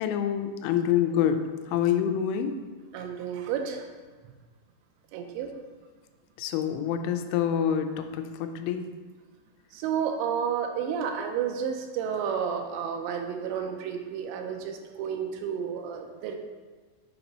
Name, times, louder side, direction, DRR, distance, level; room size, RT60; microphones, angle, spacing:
voice 1, 0.0-2.5 6.4-8.9, left 9 dB, 90° left, 7 dB, 2.8 m, -27 dB
voice 2, 2.9-3.9 5.1-5.5 9.7-16.4, right 7 dB, 85° right, 4 dB, 2.9 m, -31 dB
7.2 x 2.9 x 5.3 m, 1.4 s
omnidirectional pair, 5.1 m